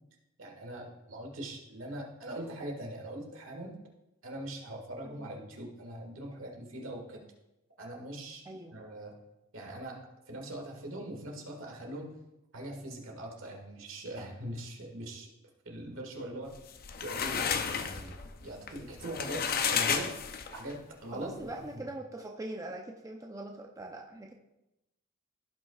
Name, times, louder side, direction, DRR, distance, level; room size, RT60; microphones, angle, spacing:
voice 1, 0.4-3.8 4.2-7.2 7.8-8.4 8.7-9.1 9.5-10.0 10.3-12.2 12.5-15.3 15.7-16.6 17.0-18.2 18.4-20.1 20.5-21.3 21.7-21.9, right 1 dB, 70° right, 1 dB, 1.8 m, -41 dB
voice 2, 8.5-8.8 21.1-24.3, right 2 dB, 15° right, 1 dB, 0.5 m, -42 dB
sound 1, 16.6-20.7, left 7 dB, 45° left, 0.5 m, -32 dB
16.0 x 5.6 x 2.4 m, 0.94 s
head